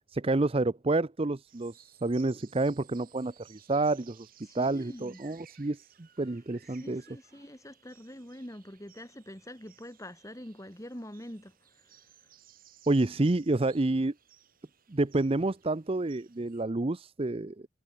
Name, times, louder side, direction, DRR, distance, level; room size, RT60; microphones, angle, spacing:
voice 1, 0.1-1.7 2.0-4.3 4.5-5.8 6.2-7.0 12.9-14.1 14.9-17.5, right 2 dB, 30° right, 0.6 m, -28 dB
sound 1, 1.5-16.6, right 10 dB, 45° right, 5.9 m, -60 dB
voice 2, 4.4-5.2 6.7-12.0, equal, 15° left, 3.6 m, -45 dB
head